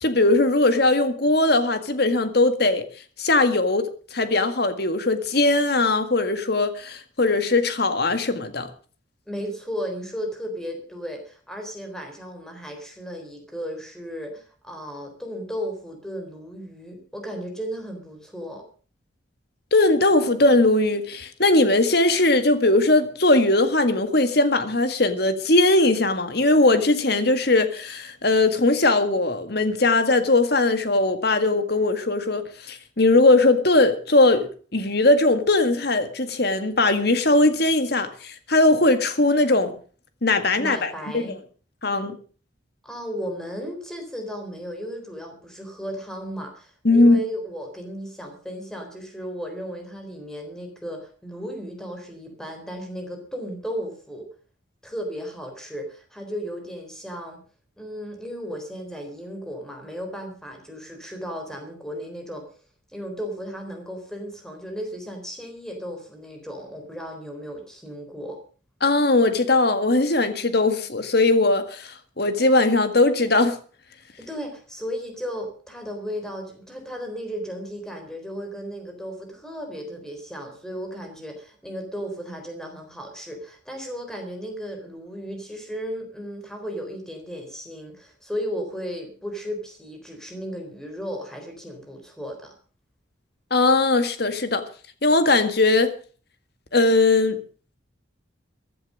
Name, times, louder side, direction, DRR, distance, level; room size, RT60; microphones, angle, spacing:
voice 1, 0.0-2.8 3.2-8.7 19.7-39.8 40.2-41.3 41.8-42.2 46.8-47.2 68.8-73.6 93.5-94.7 95.0-95.9 96.7-97.4, left 2 dB, 55° left, 1.8 m, -20 dB
voice 2, 9.3-18.6 40.6-41.4 42.8-54.3 54.8-57.4 57.8-62.5 62.9-68.4 74.2-92.5, equal, 5° left, 3.8 m, -35 dB
15.5 x 11.0 x 6.3 m
head